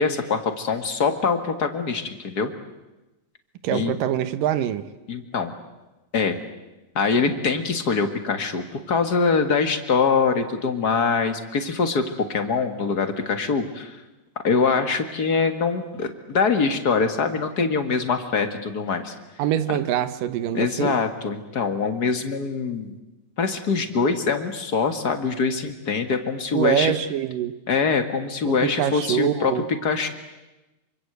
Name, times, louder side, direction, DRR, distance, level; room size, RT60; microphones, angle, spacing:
voice 1, 0.0-2.5 3.7-3.9 5.1-5.5 6.1-6.4 7.0-14.0 14.4-19.1 19.7-19.8 20.5-22.9 23.4-26.9 27.7-29.5 29.8-30.1, left 5 dB, 40° left, 7 dB, 1.7 m, -23 dB
voice 2, 3.6-4.9 19.4-21.0 26.5-27.5 28.5-29.7, right 10 dB, 80° right, 12 dB, 2.8 m, -24 dB
27.0 x 25.0 x 8.1 m, 1.0 s
omnidirectional pair, 3.9 m